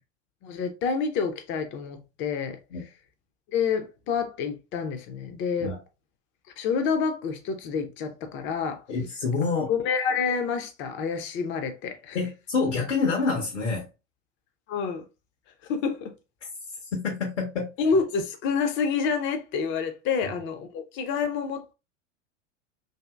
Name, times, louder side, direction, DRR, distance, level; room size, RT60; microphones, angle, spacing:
voice 1, 0.4-2.6 3.5-5.7 6.6-8.8 9.7-12.2 14.7-15.0 15.6-16.1 17.8-21.7, left 5 dB, 30° left, 0.6 m, -28 dB
voice 2, 8.9-9.7 12.1-13.9 16.9-17.7 20.2-20.3, left 4 dB, 70° left, 1.0 m, -27 dB
2.7 x 2.7 x 2.3 m
figure-of-eight pair, 85°, 36 cm